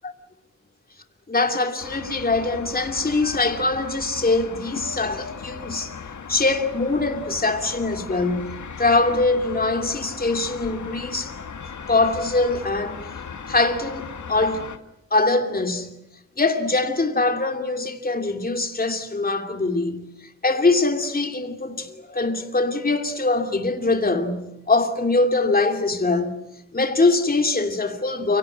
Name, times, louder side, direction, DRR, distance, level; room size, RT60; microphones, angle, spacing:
voice 1, 1.3-5.9 6.3-11.3 11.9-13.0 13.5-14.7 15.1-15.9 16.4-20.1 20.4-26.4 26.7-28.4, left 3 dB, 30° left, 2.8 m, -23 dB
sound 1, 1.8-14.8, left 6 dB, 75° left, 2.1 m, -37 dB
29.5 x 18.0 x 9.8 m
wide cardioid pair, 130°, 30 cm